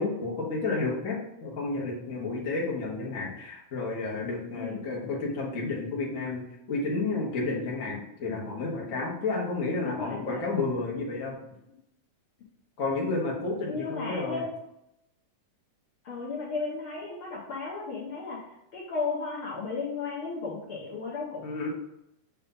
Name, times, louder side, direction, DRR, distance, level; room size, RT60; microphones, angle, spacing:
voice 1, 0.0-11.3 12.8-14.4 21.4-21.7, left 3 dB, 40° left, -3 dB, 1.2 m, -31 dB
voice 2, 9.8-10.5 11.7-11.8 13.7-14.5 16.0-18.4 18.7-21.4, left 4 dB, 60° left, -4 dB, 1.6 m, -34 dB
6.9 x 3.3 x 5.4 m, 0.84 s
omnidirectional pair, 3.3 m